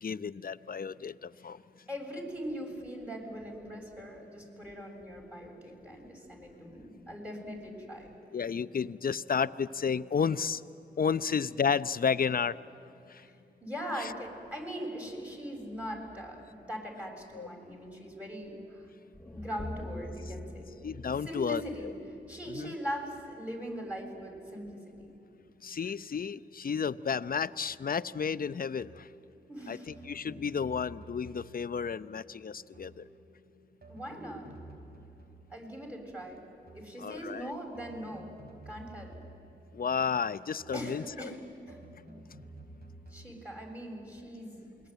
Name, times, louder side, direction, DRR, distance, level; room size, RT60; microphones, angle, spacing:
voice 1, 0.0-1.6 8.3-10.6 11.0-12.6 13.1-13.2 14.0-14.1 17.3-17.5 20.8-21.9 22.5-22.7 25.6-29.1 29.7-29.8 30.0-33.0 37.0-37.5 39.7-41.3, left 6 dB, 50° left, 15 dB, 0.8 m, -32 dB
voice 2, 1.9-8.1 13.2-18.9 19.3-20.7 21.3-21.9 22.3-24.8 29.5-29.9 33.9-34.5 35.5-36.4 36.7-38.3 38.7-39.1 40.7-41.4 41.6-41.8 43.1-44.6, equal, 5° right, 2 dB, 7.2 m, -40 dB
sound 1, 19.1-23.3, left 1 dB, 10° left, 0.7 m, -45 dB
sound 2, 27.7-27.9 28.8-29.2 29.9-31.8 32.7-33.2 33.8-35.6 36.7-37.1 37.7-39.7 40.6-41.0 41.7-43.5, right 1 dB, 55° right, 5.4 m, -51 dB
27.5 x 21.5 x 9.4 m, 2.8 s
supercardioid pair, 45°, 19 cm